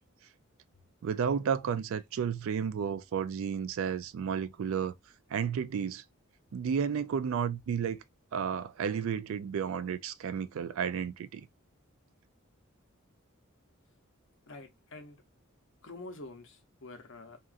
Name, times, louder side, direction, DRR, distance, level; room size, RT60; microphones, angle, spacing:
voice 1, 1.0-4.9 5.3-6.0 6.5-8.0 8.3-11.5, right 7 dB, 65° right, 0.3 m, -32 dB
voice 2, 14.5-15.2 15.8-17.4, left 2 dB, 60° left, 0.7 m, -47 dB
2.8 x 2.4 x 2.4 m
head